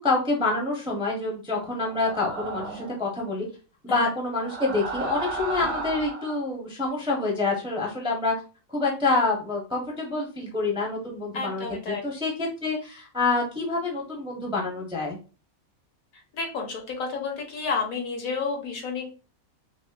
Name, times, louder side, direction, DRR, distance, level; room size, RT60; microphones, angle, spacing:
voice 1, 0.0-3.5 3.8-8.3 8.7-15.2, left 3 dB, 5° right, -2 dB, 0.6 m, -27 dB
sound 1, 1.8-3.0 4.3-6.4, right 4 dB, 85° right, 1.4 m, -34 dB
voice 2, 11.3-12.0 16.3-19.1, left 4 dB, 75° left, 2 dB, 1.4 m, -31 dB
4.7 x 2.1 x 2.3 m, 0.35 s
omnidirectional pair, 1.5 m